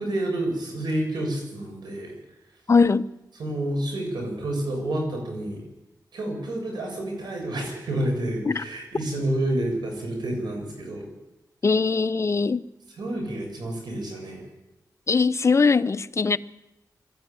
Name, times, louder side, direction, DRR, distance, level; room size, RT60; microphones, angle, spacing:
voice 1, 0.0-2.1 3.4-5.6 6.1-11.0 13.0-14.4, right 1 dB, 80° right, 2 dB, 7.1 m, -29 dB
voice 2, 2.7-3.1 8.4-8.6 11.6-12.6 15.1-16.4, left 4 dB, 40° left, 12 dB, 0.8 m, -21 dB
21.0 x 14.0 x 9.2 m, 0.92 s
cardioid pair, 75°, 7 cm